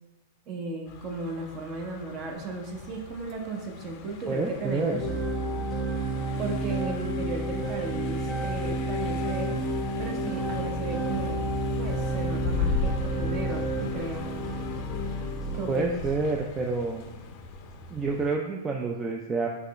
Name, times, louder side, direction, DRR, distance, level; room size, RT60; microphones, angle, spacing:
voice 1, 0.5-5.0 6.4-9.6 10.0-11.5 11.8-14.3 15.5-16.0, right 3 dB, 35° right, 2 dB, 0.8 m, -35 dB
Car passing by, 0.9-18.4, left 4 dB, 45° left, 0.5 m, -37 dB
voice 2, 4.3-5.0 15.7-17.0 17.9-19.5, right 3 dB, 20° right, 1 dB, 0.3 m, -28 dB
sound 1, 5.0-15.7, right 1 dB, ahead, 0.9 m, -30 dB
5.5 x 3.0 x 3.1 m, 1.1 s
hypercardioid pair, 135°, 0 cm